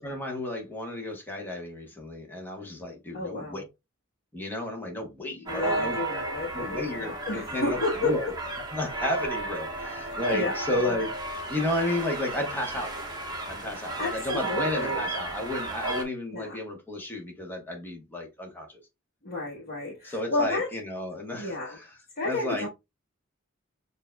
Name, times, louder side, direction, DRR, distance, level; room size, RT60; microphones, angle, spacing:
voice 1, 0.0-3.6 4.3-6.0 6.5-8.3 8.7-11.1 11.5-12.9 13.5-18.7 20.0-21.8 22.2-22.7, left 1 dB, 10° left, 1.1 m, -32 dB
voice 2, 3.1-3.6 5.2-8.1 10.0-10.8 13.7-15.1 16.3-16.6 19.2-20.7 21.4-21.8 22.1-22.7, left 2 dB, 45° left, 1.1 m, -32 dB
sound 1, 5.5-16.0, right 2 dB, 20° right, 0.9 m, -33 dB
6.5 x 2.6 x 2.2 m
head